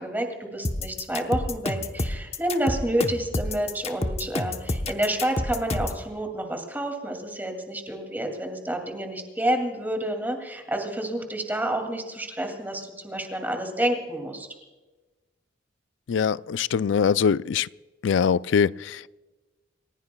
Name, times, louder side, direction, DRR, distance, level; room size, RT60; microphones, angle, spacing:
voice 1, 0.0-14.5, right 1 dB, 10° right, 2.5 m, -29 dB
sound 1, 0.6-6.0, left 2 dB, 30° left, 0.9 m, -28 dB
voice 2, 16.1-17.7 18.0-19.1, left 6 dB, 65° left, 0.4 m, -23 dB
28.5 x 16.0 x 2.3 m
head